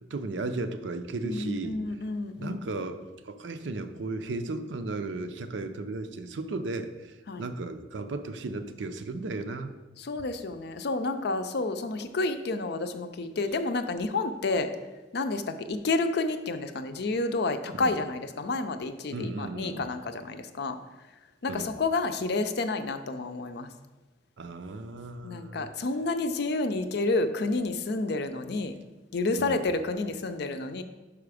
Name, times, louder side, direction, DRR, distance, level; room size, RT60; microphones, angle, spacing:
voice 1, 0.1-1.8 2.4-9.7 17.8-17.9 19.1-19.8 21.5-21.8 24.4-25.7 29.4-29.6, right 3 dB, 75° right, 8 dB, 0.5 m, -35 dB
voice 2, 1.2-2.7 7.3-7.4 10.0-14.7 15.1-20.8 21.4-23.7 25.2-28.8 29.1-30.8, left 3 dB, 60° left, 9 dB, 0.5 m, -30 dB
5.9 x 5.0 x 4.9 m, 1.2 s
head